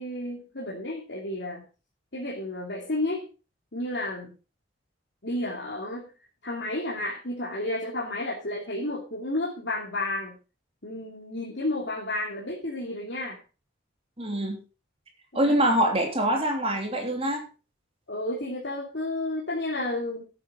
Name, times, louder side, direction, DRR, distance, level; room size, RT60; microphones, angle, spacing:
voice 1, 0.0-1.6 2.1-3.3 3.7-4.3 5.2-6.1 6.4-10.4 10.8-13.4 15.3-15.6 18.1-20.3, left 1 dB, 60° left, -4 dB, 2.7 m, -31 dB
voice 2, 14.2-14.6 15.3-17.4, right 1 dB, 30° right, 2 dB, 3.1 m, -24 dB
11.5 x 9.0 x 5.5 m, 0.33 s
head